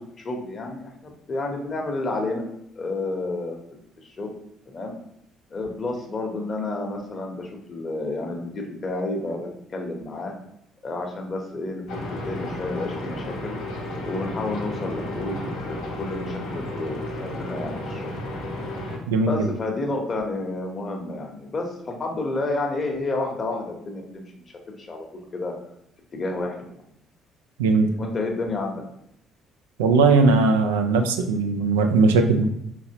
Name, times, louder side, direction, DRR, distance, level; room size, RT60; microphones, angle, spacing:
voice 1, 0.2-2.4 2.8-4.3 4.7-4.9 5.5-10.3 10.8-11.8 12.1-13.5 14.0-18.1 19.2-25.1 25.3-25.5 26.1-26.7 27.9-28.8, left 2 dB, 40° left, 1 dB, 1.0 m, -30 dB
sound 1, 11.9-19.0, left 1 dB, 75° left, 0.9 m, -32 dB
voice 2, 19.1-19.5 27.6-27.9 29.8-32.4, right 4 dB, 85° right, 5 dB, 0.4 m, -19 dB
4.1 x 2.9 x 2.9 m, 0.76 s
hypercardioid pair, 50°, 0 cm